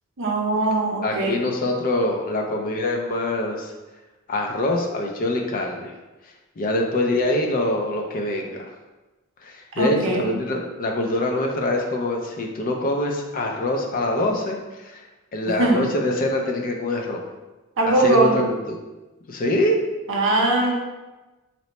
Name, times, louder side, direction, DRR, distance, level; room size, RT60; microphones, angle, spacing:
voice 1, 0.2-1.4 9.8-10.3 15.5-15.8 17.8-18.4 20.1-20.7, right 2 dB, 60° right, -1 dB, 0.7 m, -21 dB
voice 2, 1.0-3.7 4.3-5.9 6.6-8.7 9.4-15.0 15.3-17.2 17.8-18.8 19.3-19.8, left 1 dB, 40° left, 2 dB, 0.4 m, -24 dB
2.9 x 2.1 x 4.0 m, 1.1 s
head